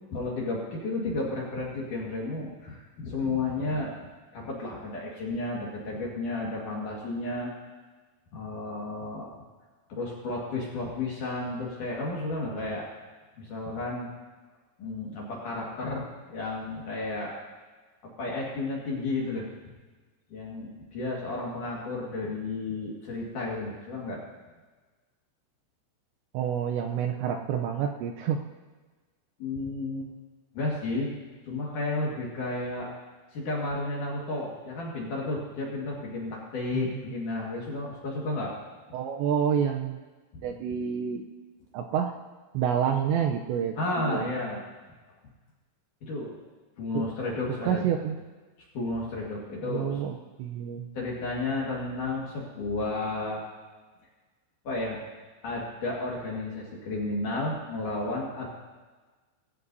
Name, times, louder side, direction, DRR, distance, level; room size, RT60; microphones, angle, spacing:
voice 1, 0.1-4.0 4.3-7.5 8.3-9.4 9.9-12.9 13.4-14.1 14.8-17.4 18.0-19.5 20.3-24.2 29.4-30.1 30.5-31.1 31.4-32.9 33.3-38.6 40.3-40.4 43.8-44.6 46.0-46.3 46.8-47.8 48.7-50.0 50.9-53.5 54.6-55.0 55.4-58.5, left 2 dB, 55° left, -3 dB, 2.6 m, -32 dB
voice 2, 26.3-28.4 36.7-37.0 38.9-40.0 40.4-41.3 41.7-42.1 42.5-44.3 46.9-47.1 47.6-48.2 49.6-50.9, right 8 dB, 80° right, 3 dB, 2.7 m, -28 dB
19.5 x 16.0 x 2.7 m, 1.3 s
omnidirectional pair, 5.6 m